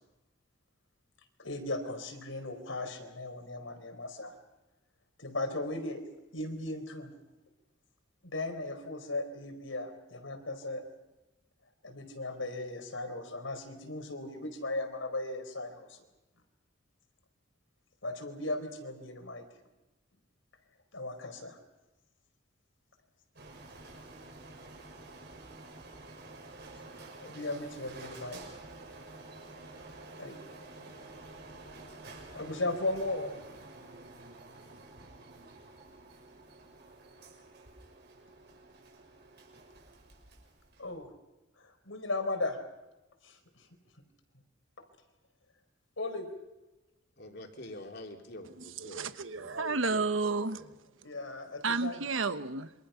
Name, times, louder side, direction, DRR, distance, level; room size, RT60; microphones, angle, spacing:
voice 1, 1.4-4.3 5.2-6.0 6.3-7.1 8.2-10.8 11.8-16.0 18.0-19.4 20.9-21.6 27.2-28.4 30.2-30.4 32.3-33.4 40.8-41.1 41.6-42.6 43.2-43.7 46.0-46.3 51.0-52.0, left 2 dB, 85° left, 6 dB, 4.5 m, -37 dB
Printer, 23.4-41.0, right 2 dB, 55° right, 6.1 m, -50 dB
voice 2, 47.2-50.1 50.5-50.7, left 1 dB, 55° left, 3 dB, 3.3 m, -47 dB
voice 3, 48.8-50.7 51.6-52.7, right 3 dB, 90° right, 11 dB, 1.3 m, -31 dB
27.5 x 25.0 x 5.8 m, 1.0 s
head